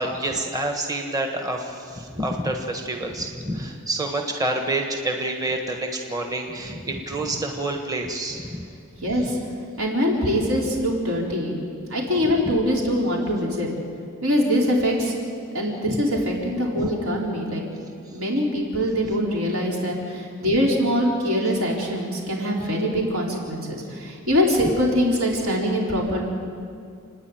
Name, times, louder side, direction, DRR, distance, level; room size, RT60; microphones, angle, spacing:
voice 1, 0.0-8.7 9.0-9.1 12.2-12.6 15.8-16.0 16.8-16.9 22.6-22.7, right 1 dB, 20° right, 3 dB, 1.4 m, -28 dB
voice 2, 9.0-9.4 9.8-11.6 11.9-13.7 14.2-15.1 15.5-17.6 18.1-26.2, equal, 75° right, -2 dB, 4.5 m, -23 dB
30.0 x 10.0 x 9.3 m, 2.3 s
head